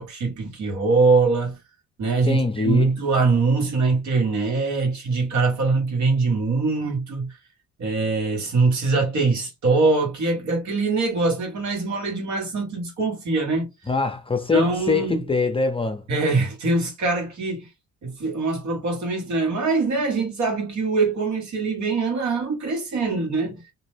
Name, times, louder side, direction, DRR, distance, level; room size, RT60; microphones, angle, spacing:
voice 1, 0.0-1.6 2.0-7.3 7.8-13.7 14.5-15.2 16.1-17.7 18.0-23.6, right 3 dB, 65° right, 1.4 m, -23 dB
voice 2, 2.3-2.9 13.9-16.0, left 4 dB, 20° left, 0.6 m, -23 dB
2.7 x 2.1 x 3.2 m
cardioid pair, 90°, 30 cm